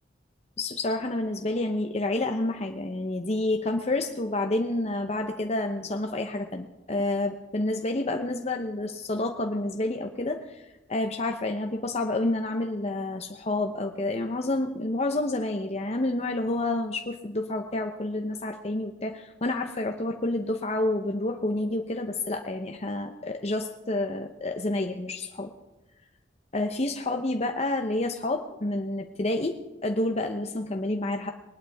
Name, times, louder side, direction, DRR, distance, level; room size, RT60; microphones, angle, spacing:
voice 1, 0.6-10.6 10.9-25.5 26.5-31.3, left 2 dB, 35° left, 4 dB, 0.8 m, -29 dB
21.0 x 19.0 x 3.5 m, 1.0 s
head